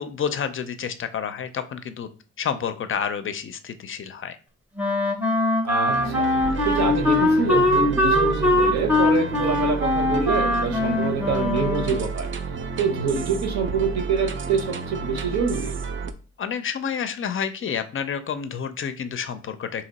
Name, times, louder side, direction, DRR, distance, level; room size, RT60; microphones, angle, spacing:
voice 1, 0.0-2.1 2.4-4.4 16.4-19.9, left 7 dB, 45° left, 10 dB, 0.4 m, -29 dB
Wind instrument woodwind instrument, 4.8-12.2, left 2 dB, 5° right, 0.7 m, -22 dB
voice 2, 5.6-6.3 6.6-12.3 12.8-15.7, right 5 dB, 70° right, 5 dB, 0.9 m, -26 dB
sound 1, 5.9-16.1, right 5 dB, 45° right, 0.4 m, -31 dB
2.9 x 2.9 x 4.0 m, 0.37 s
cardioid pair, 110°, 29 cm